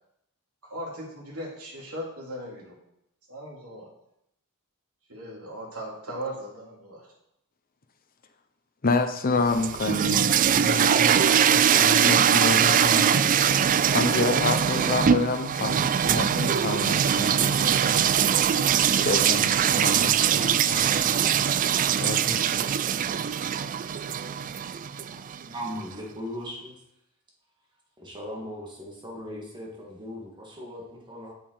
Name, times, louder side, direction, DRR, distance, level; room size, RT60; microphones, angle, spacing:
voice 1, 0.7-2.7 3.3-3.9 5.1-7.0, right 1 dB, 85° right, -4 dB, 2.9 m, -38 dB
voice 2, 8.8-11.2 11.5-13.1 13.5-18.1 18.8-21.5 22.0-22.6, left 3 dB, 40° left, 7 dB, 0.8 m, -29 dB
sound 1, 9.4-25.4, right 8 dB, 35° right, 0.3 m, -22 dB
voice 3, 25.5-26.8 28.0-31.3, equal, 20° right, -2 dB, 2.3 m, -38 dB
8.2 x 7.6 x 4.8 m, 0.80 s
head